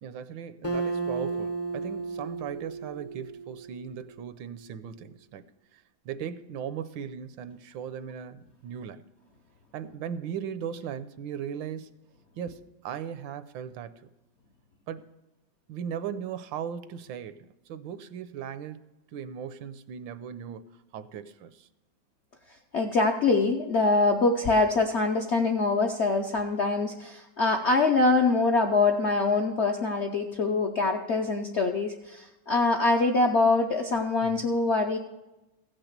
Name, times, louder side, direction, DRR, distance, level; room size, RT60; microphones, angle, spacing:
voice 1, 0.0-5.4 5.7-9.0 9.7-11.9 12.4-13.9 14.9-15.0 15.7-18.8 19.1-20.6 20.9-21.7 34.2-34.5, right 8 dB, 85° right, 12 dB, 1.4 m, -38 dB
Acoustic guitar, 0.6-4.2, right 4 dB, 25° left, 0.3 m, -34 dB
voice 2, 22.7-35.0, left 3 dB, 65° left, 3 dB, 0.7 m, -24 dB
15.5 x 6.0 x 6.6 m, 1.0 s
omnidirectional pair, 2.0 m